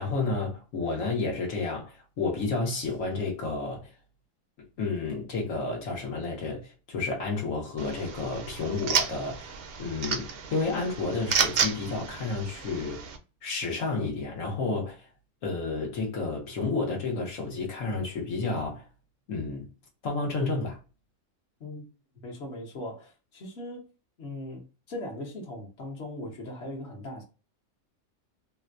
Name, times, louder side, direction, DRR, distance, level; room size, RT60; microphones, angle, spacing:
voice 1, 0.0-3.9 4.8-9.5 9.8-13.1 13.4-15.1 15.4-18.9 19.3-19.7 20.0-20.8, left 3 dB, 85° left, 1.4 m, -31 dB
sound 1, 7.8-13.2, right 6 dB, 60° right, 0.7 m, -31 dB
voice 2, 21.6-21.9 22.2-23.8 24.2-27.2, left 1 dB, 60° left, 1.3 m, -39 dB
3.7 x 2.2 x 2.5 m
omnidirectional pair, 1.3 m